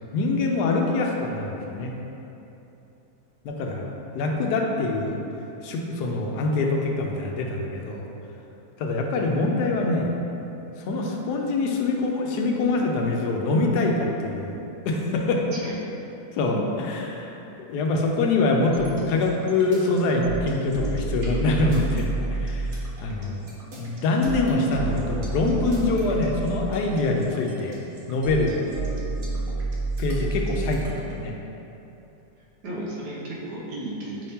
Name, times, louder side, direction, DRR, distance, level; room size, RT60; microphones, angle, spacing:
voice 1, 0.1-1.9 3.4-3.9 4.1-5.2 5.6-8.1 8.8-10.1 10.8-14.6 14.8-15.4 16.3-17.4 17.7-23.5 23.8-27.8 28.1-28.6 30.0-31.3, left 2 dB, 80° left, 0 dB, 1.1 m, -24 dB
sound 1, 18.7-31.1, right 3 dB, 50° right, 0.6 m, -30 dB
voice 2, 32.6-34.3, right 1 dB, 85° right, -5 dB, 1.5 m, -34 dB
5.4 x 2.8 x 3.5 m, 3.0 s
omnidirectional pair, 1.7 m